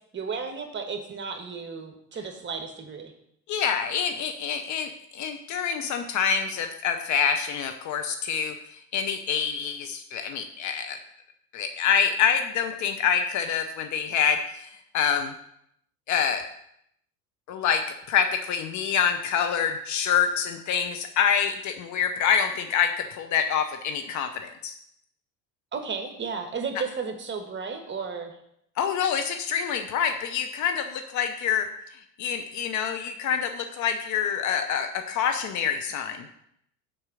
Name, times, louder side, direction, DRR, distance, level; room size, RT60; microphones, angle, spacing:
voice 1, 0.1-3.1 25.7-28.3, right 5 dB, 20° right, 6 dB, 1.3 m, -33 dB
voice 2, 3.5-11.0 11.5-14.7 14.9-15.3 16.1-16.4 17.5-24.7 28.8-31.7 32.2-36.3, left 7 dB, 35° left, 6 dB, 0.8 m, -26 dB
7.3 x 4.7 x 6.4 m, 0.73 s
figure-of-eight pair, 70°, 50 cm